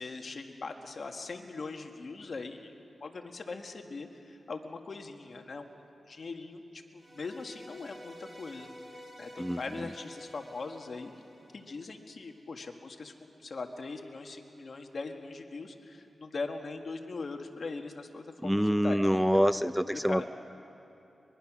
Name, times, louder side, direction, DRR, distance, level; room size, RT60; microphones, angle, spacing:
voice 1, 0.0-2.7 3.0-5.7 6.1-11.1 11.5-20.3, left 3 dB, 60° left, 4 dB, 1.7 m, -41 dB
sound 1, 6.9-12.2, equal, 20° right, 5.4 m, -51 dB
voice 2, 18.4-20.3, equal, 5° right, 13 dB, 0.4 m, -26 dB
23.5 x 22.5 x 6.2 m, 2.9 s
cardioid pair, 70°, 0 cm